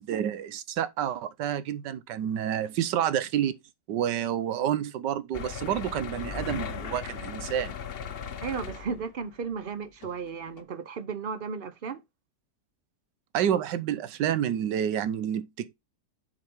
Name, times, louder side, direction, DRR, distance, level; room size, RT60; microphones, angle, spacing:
voice 1, 0.0-3.6 3.9-7.7 13.3-15.7, right 10 dB, 90° right, 1.4 m, -29 dB
sound 1, 5.3-9.3 10.0-10.2 10.6-10.7, left 7 dB, 50° left, 0.7 m, -37 dB
voice 2, 8.4-12.0, right 5 dB, 60° right, 0.5 m, -34 dB
7.4 x 4.7 x 3.5 m
omnidirectional pair, 1.8 m